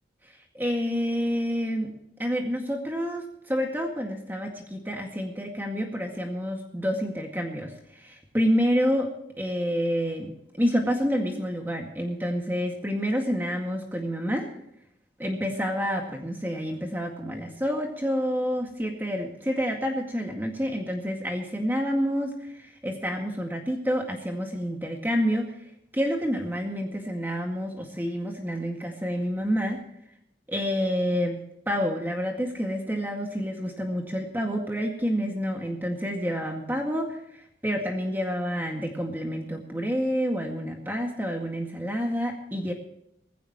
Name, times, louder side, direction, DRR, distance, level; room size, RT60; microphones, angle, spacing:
voice 1, 0.3-1.9 2.2-9.1 9.4-10.3 10.6-14.5 15.2-25.6 25.9-29.8 30.5-42.7, equal, 10° right, 2 dB, 2.0 m, -28 dB
19.5 x 16.5 x 3.1 m, 0.75 s
head